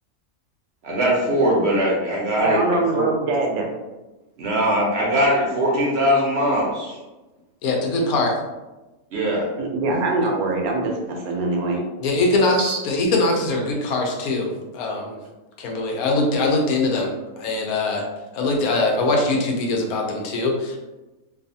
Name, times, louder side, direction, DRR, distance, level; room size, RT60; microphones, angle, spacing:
voice 1, 0.8-2.6 2.9-3.0 4.4-6.9 9.1-9.5, equal, 60° right, -4 dB, 0.7 m, -20 dB
voice 2, 2.4-3.7 9.6-11.8 12.6-12.8, right 2 dB, 80° right, 0 dB, 1.1 m, -23 dB
voice 3, 7.6-8.4 12.0-15.1 15.6-17.1 17.4-18.0 18.3-20.8, left 2 dB, 80° left, 0 dB, 1.1 m, -22 dB
2.6 x 2.4 x 2.6 m, 1.1 s
omnidirectional pair, 1.5 m